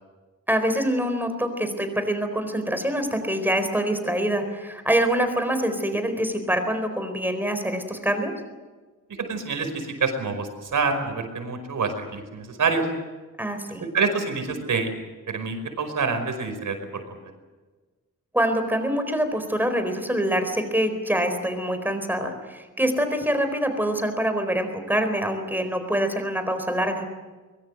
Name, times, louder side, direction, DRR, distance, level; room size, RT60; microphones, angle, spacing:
voice 1, 0.5-8.3 13.4-13.8 18.3-27.1, right 1 dB, 5° right, 7 dB, 4.3 m, -25 dB
voice 2, 9.2-12.9 13.9-14.9 15.3-17.2, right 4 dB, 85° right, 7 dB, 5.3 m, -27 dB
24.0 x 22.5 x 7.8 m, 1.3 s
wide cardioid pair, 160°, 30 cm